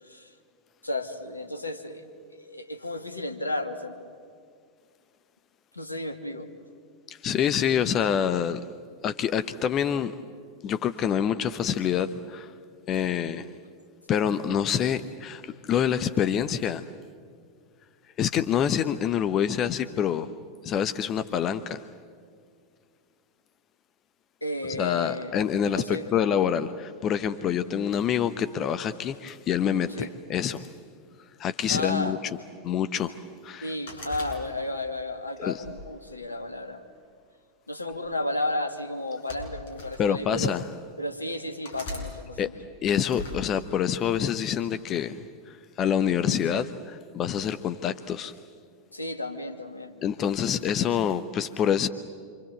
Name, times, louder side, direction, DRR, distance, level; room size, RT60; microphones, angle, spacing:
voice 1, 0.8-3.9 5.7-6.5 24.4-25.3 25.6-26.1 30.0-30.1 31.7-32.2 33.6-36.8 37.7-40.5 41.0-42.5 48.9-49.9, left 2 dB, 85° left, 2.3 m, -33 dB
voice 2, 7.1-8.7 9.0-10.1 10.6-12.5 12.9-13.5 14.1-16.8 18.2-20.3 20.6-21.9 24.7-30.7 31.4-32.2 32.6-33.7 35.4-35.5 40.0-40.6 42.4-42.5 42.8-48.3 50.0-51.9, left 8 dB, 30° left, 0.9 m, -26 dB
sound 1, 33.9-34.9 35.5-36.7 37.7-37.9 39.0-40.0 40.7-40.8 41.6-42.1 43.0-43.4, left 2 dB, 55° left, 7.7 m, -40 dB
28.0 x 26.5 x 7.9 m
figure-of-eight pair, 90°, 0 cm